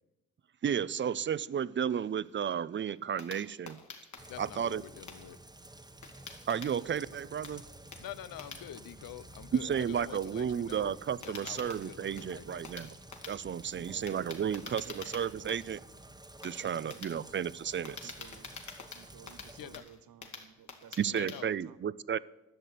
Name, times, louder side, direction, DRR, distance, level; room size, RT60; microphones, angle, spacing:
voice 1, 0.6-3.8 4.4-4.8 6.5-7.6 9.6-12.9 13.3-15.8 16.4-18.1 21.0-22.2, right 8 dB, 35° right, 19 dB, 0.5 m, -33 dB
sound 1, 1.9-7.1 7.4-21.4, left 5 dB, 55° left, 2.1 m, -48 dB
Rain, 4.2-19.8, right 1 dB, 10° right, 1.1 m, -52 dB
voice 2, 4.3-5.4 8.0-11.0 11.2-12.7 19.6-19.8 21.1-21.5, left 11 dB, 80° left, 15 dB, 0.7 m, -46 dB
voice 3, 13.7-14.3 14.6-15.1 16.6-17.1 18.0-18.6 18.9-22.0, right 9 dB, 85° right, 13 dB, 0.7 m, -55 dB
12.0 x 6.6 x 9.2 m, 1.0 s
cardioid pair, 65°, 34 cm